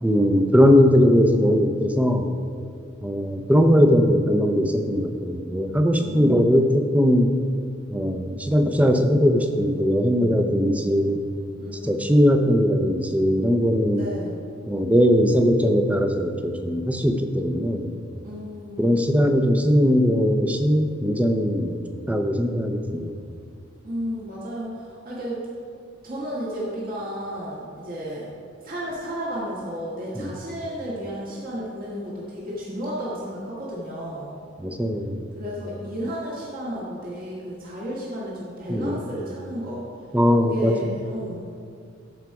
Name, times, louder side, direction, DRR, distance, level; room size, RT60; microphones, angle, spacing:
voice 1, 0.0-2.3 3.0-7.3 7.9-11.2 11.8-14.0 14.7-17.9 18.8-23.1 30.2-30.3 34.6-35.2 38.7-39.0 40.1-40.9, equal, 5° right, 5 dB, 0.6 m, -20 dB
voice 2, 6.0-6.6 11.6-12.0 13.9-14.4 18.2-18.9 23.8-25.5 26.0-28.3 28.6-34.3 35.4-39.8 40.4-41.6, equal, 45° right, -6 dB, 1.7 m, -32 dB
14.0 x 4.9 x 4.7 m, 2.3 s
head